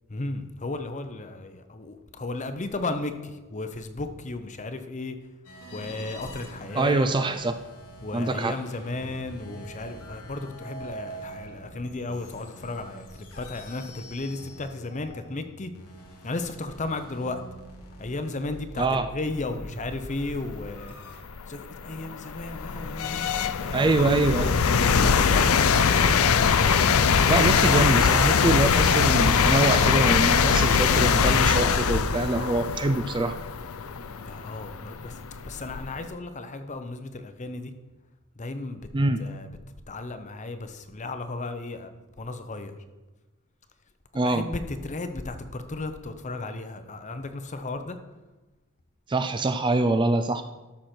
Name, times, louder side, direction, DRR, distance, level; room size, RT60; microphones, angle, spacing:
voice 1, 0.1-5.2 5.7-7.1 8.0-15.7 16.2-17.4 18.0-21.0 21.5-23.3 24.0-24.3 24.8-25.6 34.2-35.2 35.4-37.7 38.4-38.9 39.2-39.5 39.9-42.8 44.1-48.0, left 2 dB, 35° left, 9 dB, 0.7 m, -34 dB
sound 1, 5.4-21.2, equal, 90° left, 1.6 m, -44 dB
voice 2, 6.7-7.5 8.1-8.6 18.8-19.1 23.7-24.5 27.3-33.4 38.9-39.2 44.1-44.5 49.1-50.4, right 2 dB, 20° right, 9 dB, 0.4 m, -24 dB
sound 2, 20.6-20.7 21.3-36.1, left 6 dB, 70° left, 0.5 m, -22 dB
13.0 x 6.2 x 4.4 m, 1.1 s
head